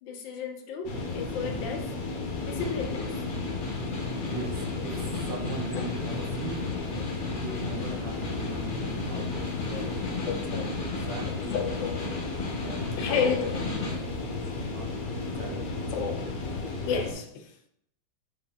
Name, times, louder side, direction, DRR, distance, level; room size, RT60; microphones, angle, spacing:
voice 1, 0.0-1.9 2.4-3.1 7.0-7.1 7.9-8.0 9.7-9.8 10.3-10.6 11.5-12.0 13.0-13.6 15.9-16.3 16.9-17.5, left 6 dB, 90° left, 4 dB, 1.4 m, -32 dB
sound 1, 0.8-17.1, left 3 dB, 65° left, 1.0 m, -34 dB
Snare drum, 2.3-14.1, left 3 dB, 40° left, 0.8 m, -37 dB
voice 2, 4.2-6.6 7.4-9.4 9.8-10.5 10.8-11.6 12.6-13.3 13.7-13.9 14.7-15.8, right 2 dB, 80° right, 3 dB, 1.4 m, -40 dB
5.0 x 2.3 x 3.5 m, 0.73 s
omnidirectional pair, 2.0 m